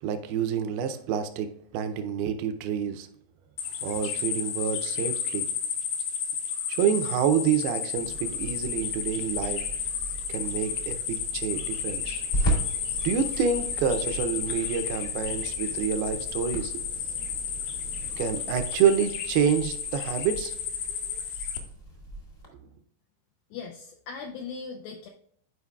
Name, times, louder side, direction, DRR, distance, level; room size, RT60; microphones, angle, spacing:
voice 1, 0.0-3.1 3.8-5.5 6.7-9.6 10.3-12.2 13.0-16.9 18.2-20.5, right 7 dB, 80° right, 2.2 m, -28 dB
sound 1, 3.6-21.6, left 7 dB, 75° left, 2.4 m, -32 dB
sound 2, 7.9-18.4, right 4 dB, 50° right, 0.4 m, -44 dB
sound 3, 11.2-22.5, right 1 dB, 45° left, 0.7 m, -37 dB
voice 2, 23.5-25.1, left 5 dB, 90° left, 2.0 m, -39 dB
11.0 x 4.9 x 2.3 m
omnidirectional pair, 4.8 m